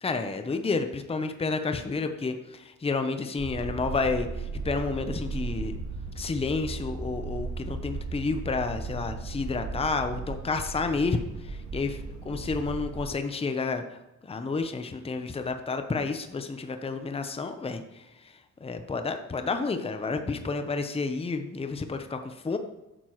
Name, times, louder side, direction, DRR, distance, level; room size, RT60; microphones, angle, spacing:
voice 1, 0.0-5.8 6.2-13.8 14.2-22.6, left 4 dB, 20° left, 7 dB, 0.7 m, -30 dB
sound 1, 3.4-13.0, right 4 dB, 65° right, 1.7 m, -36 dB
10.0 x 6.8 x 3.1 m, 0.98 s
cardioid pair, 90°, 30 cm